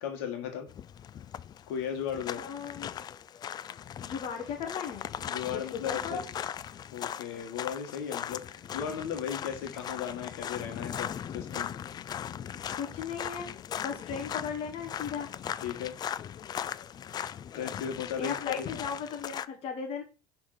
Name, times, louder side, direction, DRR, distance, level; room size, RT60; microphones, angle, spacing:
voice 1, 0.0-0.7 1.7-2.4 5.3-6.2 6.9-11.7 15.6-15.9 17.5-18.7, left 8 dB, 75° left, 4 dB, 1.7 m, -36 dB
sound 1, 0.7-19.5, left 9 dB, 30° left, 0.4 m, -39 dB
voice 2, 2.3-2.9 4.0-5.1 5.5-6.2 12.7-13.5 13.8-15.3 18.2-20.0, left 6 dB, 50° left, 3 dB, 1.3 m, -36 dB
6.0 x 3.8 x 5.0 m, 0.31 s
supercardioid pair, 90°, 13 cm